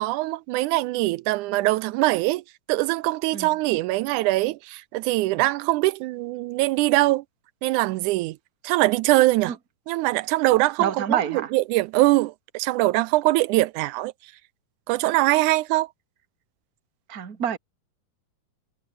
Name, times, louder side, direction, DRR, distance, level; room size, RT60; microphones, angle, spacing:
voice 1, 0.0-2.4 2.7-7.2 7.6-8.4 8.6-9.5 9.9-14.1 14.9-15.9, right 19 dB, 80° right, 2.0 m, -22 dB
voice 2, 10.8-11.5 17.1-17.6, right 8 dB, 35° right, 2.0 m, -27 dB
omnidirectional pair, 3.7 m